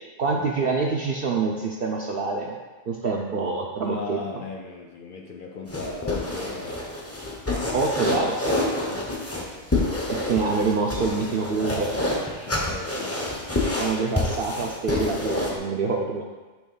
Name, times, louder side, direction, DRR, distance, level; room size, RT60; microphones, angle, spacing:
voice 1, 0.2-2.5 2.9-4.2 7.7-8.5 10.2-11.9 13.8-16.2, right 4 dB, 60° right, -2 dB, 0.6 m, -26 dB
voice 2, 3.8-6.8 8.9-9.1 9.5-9.7 12.5-13.1, left 4 dB, 60° left, 2 dB, 0.5 m, -37 dB
sound 1, 5.7-15.6, left 1 dB, 15° left, 0.5 m, -27 dB
6.2 x 3.1 x 5.4 m, 1.3 s
omnidirectional pair, 1.3 m